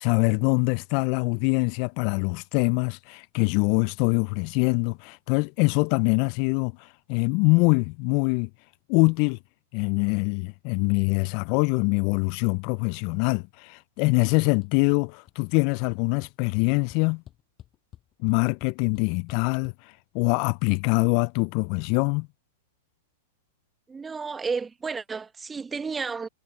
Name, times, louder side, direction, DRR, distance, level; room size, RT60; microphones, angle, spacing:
voice 1, 0.0-8.5 8.9-9.4 9.7-17.2 18.2-22.3, left 31 dB, 50° left, 0.4 m, -24 dB
sound 1, 14.6-15.0 15.2-15.6 15.9-19.7, left 12 dB, 30° left, 7.1 m, -49 dB
voice 2, 23.9-26.3, right 5 dB, 15° right, 1.3 m, -32 dB
hypercardioid pair, 110°, 0 cm